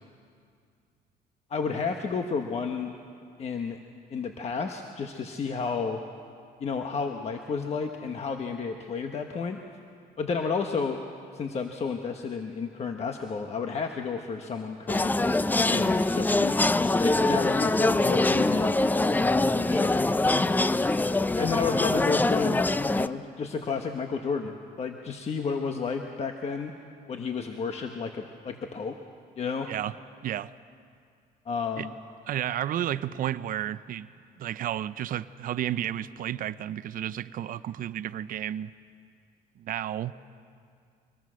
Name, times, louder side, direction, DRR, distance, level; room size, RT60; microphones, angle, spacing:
voice 1, 1.5-2.9 3.4-3.8 4.1-6.0 6.6-9.6 10.2-11.0 11.3-15.1 15.7-16.5 17.0-19.2 19.6-20.0 21.4-22.6 22.9-26.7 27.1-28.9 29.4-29.7 31.4-31.9, left 5 dB, 40° left, 4 dB, 1.2 m, -31 dB
sound 1, 14.9-23.1, left 2 dB, 10° left, 0.5 m, -24 dB
voice 2, 32.3-34.1 34.4-38.7 39.6-40.1, right 11 dB, 55° right, 14 dB, 0.6 m, -32 dB
24.5 x 19.0 x 6.3 m, 2.3 s
cardioid pair, 110°, 17 cm